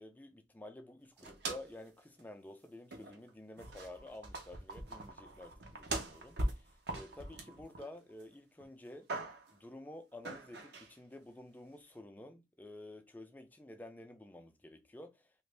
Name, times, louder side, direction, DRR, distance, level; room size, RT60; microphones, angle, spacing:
voice 1, 0.0-9.1 9.5-15.4, left 1 dB, 10° left, 0.3 m, -51 dB
sound 1, 1.2-1.9 2.2-2.3 2.9-3.3 3.6-8.2 8.6-9.6 10.2-10.9, right 2 dB, 60° right, 0.7 m, -42 dB
2.9 x 2.5 x 3.3 m
head